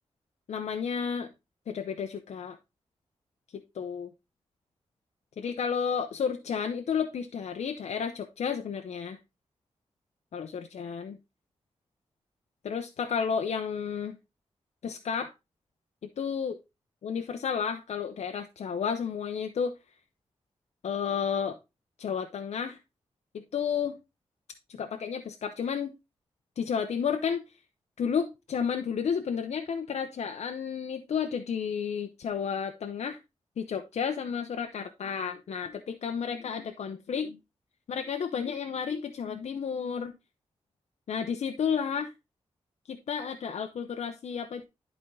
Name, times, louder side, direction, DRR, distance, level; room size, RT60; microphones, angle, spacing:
voice 1, 0.5-1.3 1.7-2.6 3.7-4.1 5.4-9.2 10.3-11.2 12.6-14.2 14.8-15.3 16.2-16.5 17.0-19.8 20.8-21.6 22.0-22.8 23.3-24.0 24.7-25.9 26.6-27.4 28.0-33.2 33.6-37.4 37.9-40.1 41.1-42.1 42.9-44.6, left 7 dB, 85° left, 0.7 m, -32 dB
11.0 x 4.5 x 3.7 m
wide cardioid pair, 140°, 11 cm